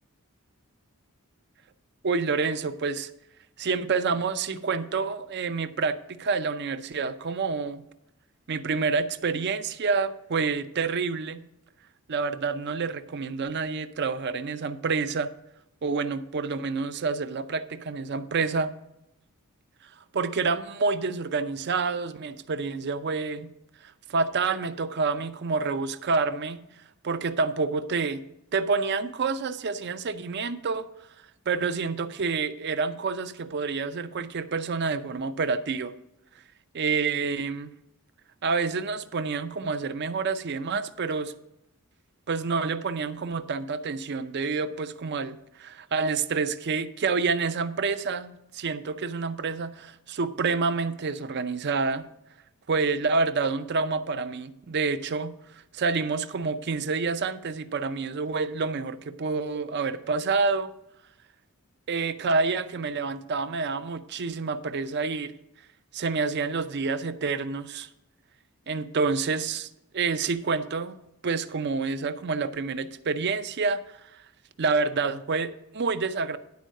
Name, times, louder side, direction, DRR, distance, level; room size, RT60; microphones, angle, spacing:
voice 1, 2.0-3.1 3.6-7.8 8.5-11.4 12.1-15.3 15.8-18.7 20.1-23.5 23.8-26.6 27.0-28.2 28.5-30.9 31.5-35.9 36.7-37.7 38.4-41.3 42.3-52.1 52.7-55.3 55.7-60.7 61.9-65.3 65.9-67.9 68.7-69.7 69.9-71.0 71.2-74.0 74.6-76.4, right 4 dB, 50° right, 12 dB, 0.5 m, -28 dB
10.5 x 4.5 x 6.3 m, 0.86 s
head